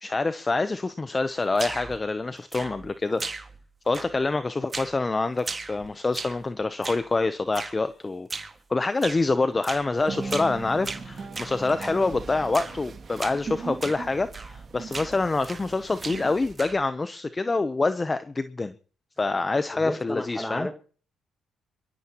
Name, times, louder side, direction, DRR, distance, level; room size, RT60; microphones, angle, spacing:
voice 1, 0.0-3.2 3.9-8.3 8.7-18.7 19.2-20.7, left 3 dB, 25° left, 0.7 m, -26 dB
sound 1, 1.6-2.0 2.5-2.9 3.2-3.7 3.9-4.3 4.7-5.0 5.4-6.5 6.8-7.1 7.5-7.8 8.3-8.6 9.0-9.2 9.6-9.9 10.3-10.6 10.8-12.0 12.5-12.8 13.2-13.4 13.8-14.0 14.3-14.6 14.9-15.7 16.0-16.9, right 3 dB, 30° right, 1.8 m, -36 dB
sound 2, 9.9-16.5, right 4 dB, 45° right, 2.4 m, -38 dB
voice 2, 19.7-20.7, left 1 dB, 5° left, 1.9 m, -32 dB
25.5 x 13.5 x 3.0 m
cardioid pair, 90°, 0 cm